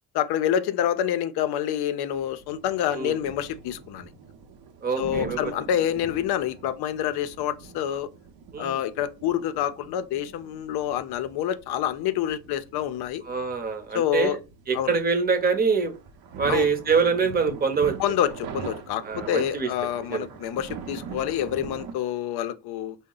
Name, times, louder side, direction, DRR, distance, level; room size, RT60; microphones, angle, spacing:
voice 1, 0.1-4.1 5.0-8.1 8.6-13.2 13.9-14.4 14.7-15.0 16.5-16.7 18.0-23.0, left 10 dB, 80° left, 0.5 m, -27 dB
sound 1, 2.1-22.0, right 6 dB, 70° right, 0.7 m, -43 dB
voice 2, 4.8-5.5 8.5-8.8 13.3-14.4 14.7-15.9 16.4-18.0 19.0-19.7 20.1-20.2, right 5 dB, 25° right, 0.7 m, -24 dB
3.7 x 2.1 x 3.7 m
cardioid pair, 115°, 38 cm